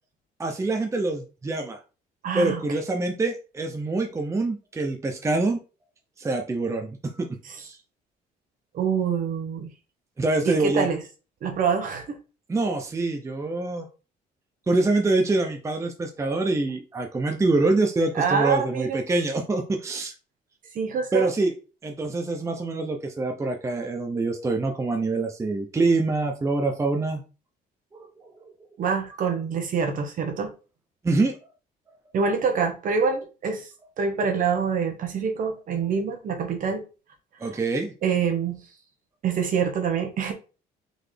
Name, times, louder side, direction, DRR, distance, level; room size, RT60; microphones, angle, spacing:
voice 1, 0.4-1.8 2.3-5.6 6.2-7.3 7.6-7.8 10.2-10.9 12.5-13.9 14.7-20.1 21.1-21.5 21.8-27.2 27.9-28.3 31.0-31.4 37.4-37.9, right 2 dB, 15° right, 0.7 m, -25 dB
voice 2, 2.2-2.6 8.7-9.7 10.4-11.0 11.4-12.2 18.1-19.0 20.7-21.3 28.8-30.5 32.1-33.7 34.0-36.8 38.0-38.6 39.2-40.3, right 6 dB, 55° right, 1.1 m, -25 dB
4.0 x 3.3 x 3.3 m
cardioid pair, 110°, 17 cm